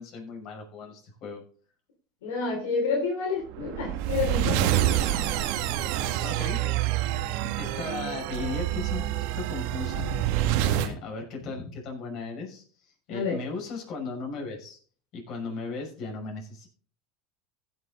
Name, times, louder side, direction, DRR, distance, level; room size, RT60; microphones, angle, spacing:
voice 1, 0.0-1.4 6.2-6.6 7.6-9.0 9.3-10.0 10.5-14.8 15.1-16.7, left 4 dB, 50° left, 1 dB, 6.1 m, -37 dB
voice 2, 2.2-4.7 13.1-13.4, left 4 dB, 85° left, -1 dB, 3.9 m, -29 dB
sound 1, 3.5-10.9, right 12 dB, 70° right, 1.4 m, -27 dB
16.0 x 7.3 x 3.9 m, 0.42 s
supercardioid pair, 105°, 0 cm